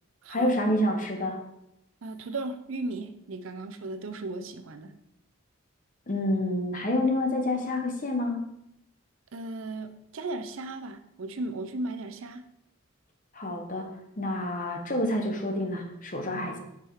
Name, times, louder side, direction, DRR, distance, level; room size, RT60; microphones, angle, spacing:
voice 1, 0.3-1.4 6.1-8.5 13.3-13.9 14.2-16.6, left 1 dB, 40° left, 3 dB, 1.0 m, -28 dB
voice 2, 2.0-4.9 9.3-12.5 16.3-16.5, right 2 dB, 75° right, 8 dB, 0.6 m, -36 dB
5.6 x 4.9 x 4.5 m, 0.83 s
head